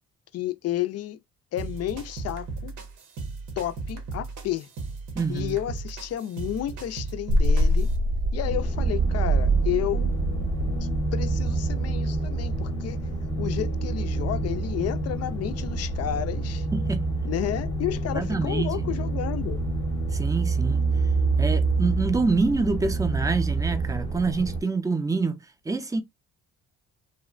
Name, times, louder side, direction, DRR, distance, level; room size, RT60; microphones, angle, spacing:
voice 1, 0.3-1.2 1.5-2.8 3.6-4.7 5.3-7.9 8.3-10.2 10.8-13.0 13.4-16.7 17.2-19.6, left 12 dB, 55° left, 0.4 m, -31 dB
sound 1, 1.6-7.9, right 4 dB, 80° right, 0.9 m, -37 dB
voice 2, 5.2-5.6 16.7-17.0 18.1-18.8 20.1-20.8 21.4-25.4 25.7-26.0, right 4 dB, 10° right, 0.4 m, -26 dB
sound 2, 7.3-12.7, right 1 dB, 65° right, 0.6 m, -25 dB
sound 3, 8.4-24.6, right 3 dB, 15° left, 0.7 m, -27 dB
2.9 x 2.1 x 2.3 m
cardioid pair, 90°, 30 cm